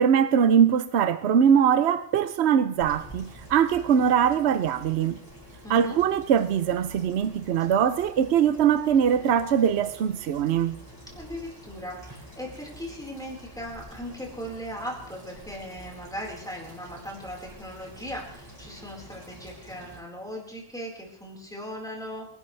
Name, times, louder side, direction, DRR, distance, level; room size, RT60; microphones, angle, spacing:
voice 1, 0.0-5.2 5.7-10.8, right 8 dB, 70° right, 1.0 m, -22 dB
sound 1, 2.6-20.0, equal, 20° right, 6.7 m, -47 dB
voice 2, 5.6-6.0 11.2-22.3, equal, 5° left, 4.4 m, -38 dB
26.0 x 11.5 x 3.3 m
omnidirectional pair, 1.2 m